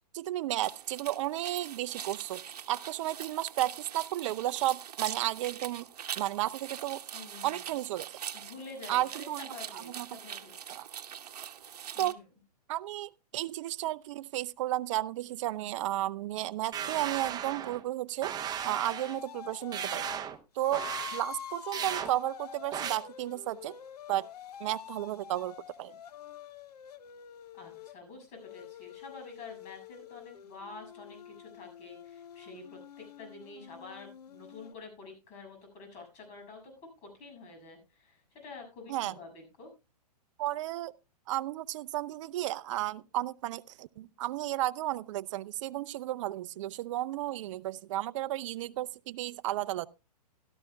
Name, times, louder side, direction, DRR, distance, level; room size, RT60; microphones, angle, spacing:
voice 1, 0.1-2.4 2.7-5.9 6.2-7.0 7.4-8.1 8.9-10.1 10.7-10.9 12.0-12.2 12.7-20.2 20.6-20.8 21.1-23.8 24.1-24.3 24.6-25.9 38.9-39.1 40.4-40.9 41.3-49.9, right 15 dB, 50° right, 0.5 m, -33 dB
sound 1, 0.6-12.1, right 9 dB, 70° right, 1.0 m, -43 dB
voice 2, 7.1-7.7 8.3-10.5 11.9-12.2 27.5-36.6 37.0-39.7, left 3 dB, 35° left, 6.9 m, -48 dB
sound 2, 16.7-17.8 18.2-19.2 19.7-20.4 20.7-21.2 21.7-22.1 22.7-23.0, right 9 dB, 20° right, 0.9 m, -36 dB
sound 3, 18.6-20.2 20.6-28.0 28.4-34.7, left 8 dB, 70° left, 0.9 m, -46 dB
16.5 x 12.5 x 2.3 m
hypercardioid pair, 125°, 21 cm